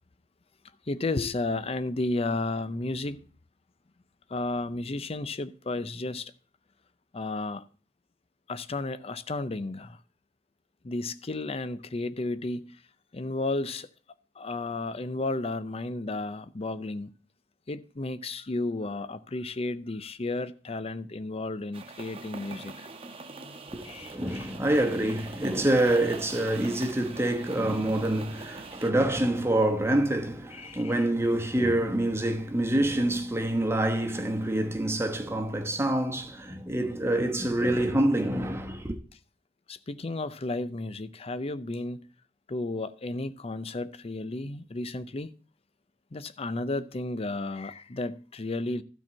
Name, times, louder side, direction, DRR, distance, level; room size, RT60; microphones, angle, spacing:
voice 1, 0.9-3.2 4.3-6.3 7.1-7.6 8.5-10.0 10.8-12.8 13.1-13.9 14.4-17.1 17.7-22.9 23.8-24.5 30.5-31.1 39.7-42.0 42.5-45.3 46.1-48.8, left 2 dB, 35° left, 0.6 m, -33 dB
sound 1, 21.7-28.9, right 3 dB, 35° right, 1.1 m, -43 dB
voice 2, 23.7-38.9, right 1 dB, 15° right, 1.1 m, -26 dB
12.5 x 4.5 x 7.4 m
head